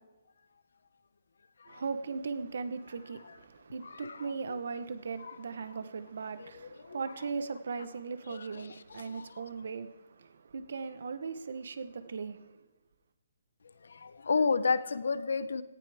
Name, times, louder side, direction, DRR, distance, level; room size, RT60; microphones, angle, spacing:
voice 1, 1.7-12.6, right 5 dB, 55° right, 1.0 m, -38 dB
voice 2, 3.8-4.3 6.9-7.1 8.3-8.7 9.0-9.3 14.0-15.6, left 4 dB, 75° left, 0.8 m, -31 dB
18.0 x 14.5 x 3.5 m
hypercardioid pair, 180°, 0 cm